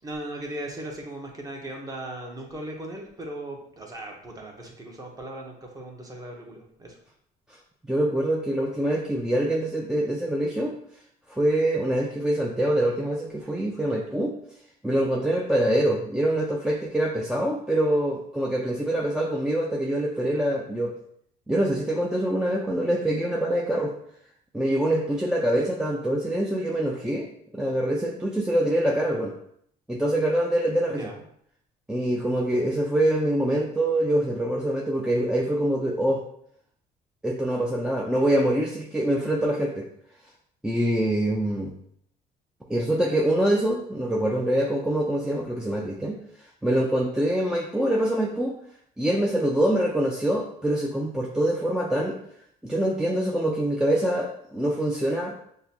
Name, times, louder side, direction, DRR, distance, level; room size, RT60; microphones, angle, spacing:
voice 1, 0.0-7.0 31.0-31.2, right 1 dB, 20° right, 0 dB, 1.0 m, -38 dB
voice 2, 7.9-10.7 11.3-14.3 14.8-21.0 21.5-23.9 24.5-27.3 27.5-29.4 29.9-31.1 31.9-36.2 37.2-39.9 40.6-41.7 42.7-46.2 46.6-48.6 49.0-52.2 52.6-55.4, right 1 dB, 5° right, -1 dB, 0.4 m, -25 dB
6.4 x 2.2 x 2.8 m, 0.69 s
cardioid pair, 110°, 17 cm